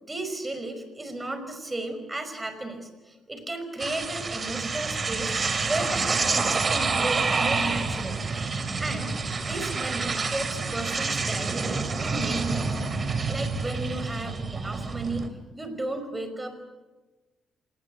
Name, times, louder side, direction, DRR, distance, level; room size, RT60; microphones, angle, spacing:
voice 1, 0.0-8.2 8.8-9.1 9.4-12.8 13.3-15.3 15.6-16.6, right 2 dB, 15° right, 8 dB, 5.5 m, -34 dB
sound 1, 3.8-15.3, right 4 dB, 35° right, 2.8 m, -28 dB
27.0 x 19.5 x 7.9 m, 1.2 s
cardioid pair, 95°, 0 cm